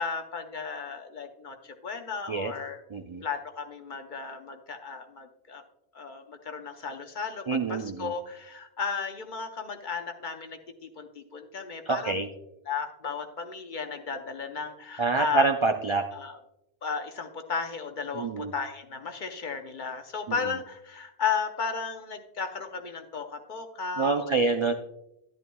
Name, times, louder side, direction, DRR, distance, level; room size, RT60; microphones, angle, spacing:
voice 1, 0.0-2.8 3.2-5.6 5.9-12.2 12.7-15.4 16.1-16.4 16.8-24.4, left 5 dB, 50° left, 5 dB, 0.8 m, -34 dB
voice 2, 2.9-3.2 7.5-8.1 11.9-12.3 15.0-16.0 18.1-18.5 20.3-20.4 24.0-24.7, right 4 dB, 55° right, 5 dB, 0.3 m, -26 dB
11.0 x 11.0 x 2.2 m, 0.85 s
omnidirectional pair, 1.1 m